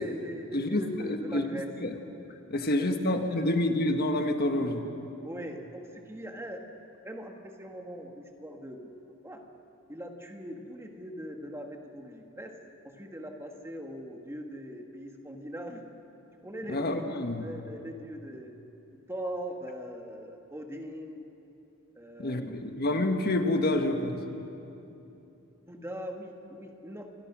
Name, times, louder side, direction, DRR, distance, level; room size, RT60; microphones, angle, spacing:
voice 1, 0.0-1.7 2.5-3.5 5.2-6.6 7.0-8.8 9.2-9.4 9.9-12.5 12.8-15.8 16.4-18.5 19.1-21.2 21.9-22.7 25.7-27.1, equal, 10° right, 3 dB, 1.8 m, -41 dB
voice 2, 0.5-1.4 1.8-1.9 2.5-4.8 16.7-17.4 22.2-24.2, left 1 dB, 45° left, 5 dB, 1.5 m, -28 dB
28.5 x 23.0 x 6.2 m, 2.9 s
head